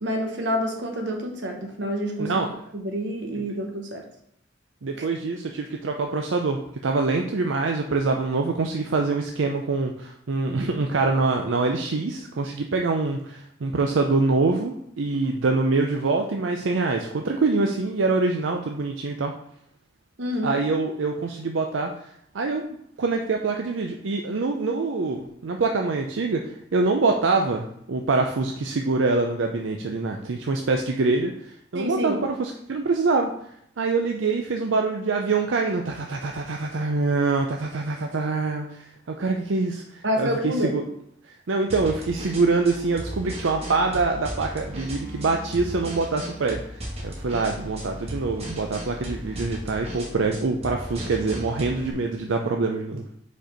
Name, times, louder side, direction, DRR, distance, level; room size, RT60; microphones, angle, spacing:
voice 1, 0.0-2.3 2.7-4.0 5.0-5.1 20.2-20.6 31.7-32.2 40.0-40.7, equal, 70° right, 3 dB, 1.2 m, -28 dB
voice 2, 2.2-2.5 4.8-19.3 20.4-21.9 22.3-22.6 23.0-33.3 33.8-40.8 41.5-53.0, right 3 dB, 90° right, 3 dB, 0.6 m, -25 dB
sound 1, 41.7-51.9, equal, 35° right, 1.3 m, -36 dB
5.2 x 4.4 x 5.1 m, 0.70 s
head